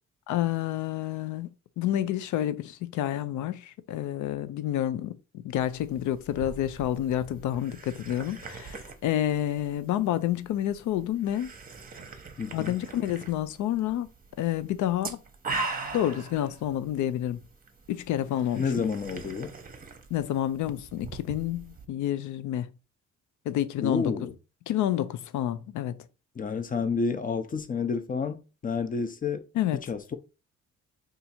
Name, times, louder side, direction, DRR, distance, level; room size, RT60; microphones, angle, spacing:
voice 1, 0.3-1.5 1.8-5.1 5.4-11.5 12.5-14.1 14.4-15.2 15.9-17.4 17.9-18.8 20.1-22.7 23.5-24.1 24.7-26.0 29.5-29.8, left 12 dB, 75° left, 0.5 m, -29 dB
sound 1, 5.6-21.9, right 3 dB, 30° right, 0.8 m, -42 dB
voice 2, 12.4-12.8 18.5-19.5 23.8-24.3 26.4-29.5 29.9-30.2, left 5 dB, 30° left, 0.6 m, -30 dB
2.7 x 2.5 x 4.2 m
cardioid pair, 90°, 30 cm